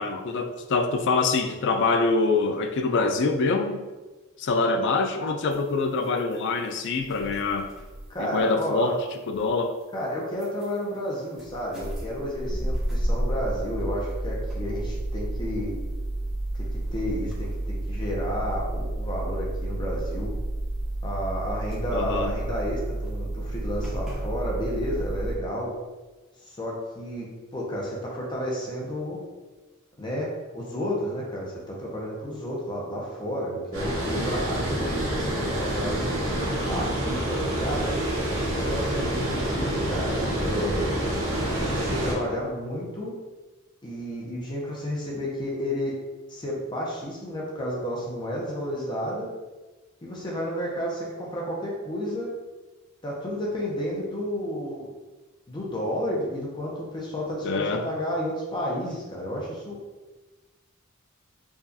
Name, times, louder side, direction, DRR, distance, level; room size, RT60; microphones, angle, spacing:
voice 1, 0.0-3.8 4.4-7.7 8.2-9.0 9.3-9.8 21.9-22.3 57.4-57.8, left 3 dB, 55° left, 0.4 m, -25 dB
sound 1, 5.5-5.6 6.0-6.3 7.0-8.2 9.3-9.5 10.4-10.8 11.0-11.1 11.3-25.4, right 1 dB, ahead, 0.9 m, -31 dB
voice 2, 8.1-9.0 9.9-15.7 16.9-20.3 21.0-25.7 26.4-27.3 27.5-29.2 30.0-36.0 36.7-37.9 38.7-40.8 41.6-43.1 43.8-45.9 46.3-49.3 50.0-52.3 53.0-54.9 55.5-59.8, equal, 20° left, 0.6 m, -31 dB
Water, 33.7-42.1, right 1 dB, 65° right, 1.1 m, -27 dB
4.7 x 2.4 x 2.6 m
head